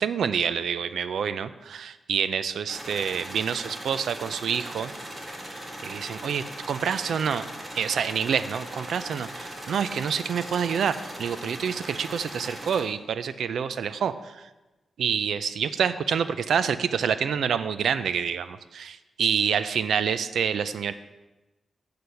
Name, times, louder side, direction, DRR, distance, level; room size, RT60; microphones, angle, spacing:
voice 1, 0.0-4.9 5.8-7.5 7.7-14.5 15.0-20.9, right 7 dB, 90° right, 13 dB, 0.4 m, -27 dB
sound 1, 2.7-12.8, right 1 dB, 20° right, 1.4 m, -39 dB
7.9 x 6.8 x 5.6 m, 1.1 s
wide cardioid pair, 130°, 0 cm